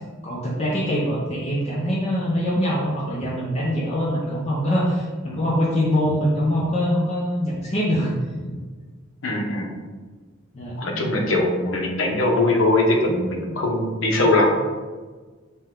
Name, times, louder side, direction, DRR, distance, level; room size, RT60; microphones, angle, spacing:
voice 1, 0.2-8.1 8.4-8.5 10.5-10.8, equal, 30° left, -6 dB, 0.6 m, -23 dB
voice 2, 9.2-9.8 10.8-14.6, left 2 dB, 75° left, 1 dB, 0.8 m, -21 dB
5.4 x 2.2 x 3.6 m, 1.4 s
head